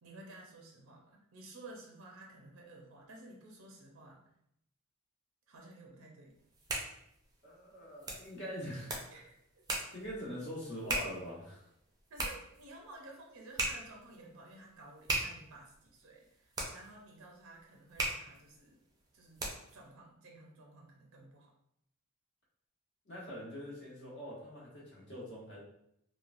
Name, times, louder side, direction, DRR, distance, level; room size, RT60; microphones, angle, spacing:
voice 1, 0.0-4.2 5.5-6.3 9.1-9.4 12.1-18.8 19.1-21.5, right 2 dB, 80° right, 0 dB, 0.6 m, -53 dB
sound 1, 6.4-19.8, right 2 dB, 20° right, 0.5 m, -41 dB
voice 2, 7.4-8.9 9.9-11.7 23.1-25.6, equal, 60° left, -5 dB, 1.1 m, -43 dB
3.1 x 2.1 x 2.5 m, 0.76 s
head